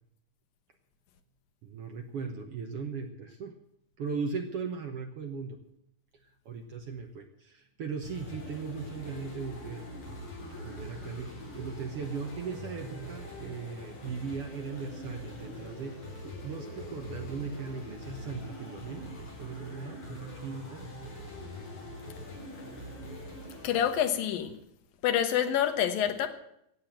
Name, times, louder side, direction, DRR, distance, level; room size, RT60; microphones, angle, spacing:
voice 1, 1.6-3.5 4.0-5.6 6.4-9.8 10.6-20.9, right 5 dB, 60° right, 1.6 m, -38 dB
sound 1, 8.0-24.0, left 1 dB, 55° left, 5.6 m, -43 dB
voice 2, 23.6-24.6 25.0-26.3, left 9 dB, 85° left, 2.9 m, -27 dB
16.0 x 8.8 x 7.4 m
omnidirectional pair, 3.9 m